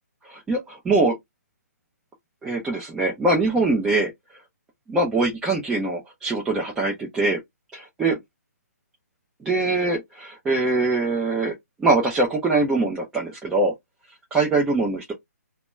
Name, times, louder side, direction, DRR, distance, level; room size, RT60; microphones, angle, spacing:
voice 1, 0.3-1.2 2.4-4.1 4.9-7.4 7.7-8.2 9.4-11.5 11.8-13.7 14.3-15.1, right 3 dB, 5° right, 0.3 m, -23 dB
2.2 x 2.1 x 2.9 m
hypercardioid pair, 160°, 9 cm